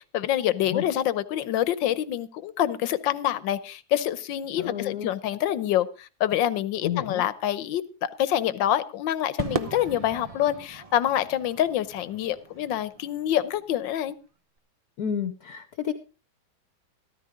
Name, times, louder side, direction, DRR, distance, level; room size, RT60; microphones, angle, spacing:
voice 1, 0.1-14.1, left 11 dB, 75° left, 15 dB, 1.5 m, -26 dB
voice 2, 4.6-5.1 6.8-7.2 15.0-15.9, left 8 dB, 60° left, 9 dB, 1.2 m, -30 dB
Crowd / Fireworks, 9.4-13.9, right 3 dB, 65° right, 0.3 m, -37 dB
14.0 x 14.0 x 3.6 m, 0.32 s
omnidirectional pair, 2.2 m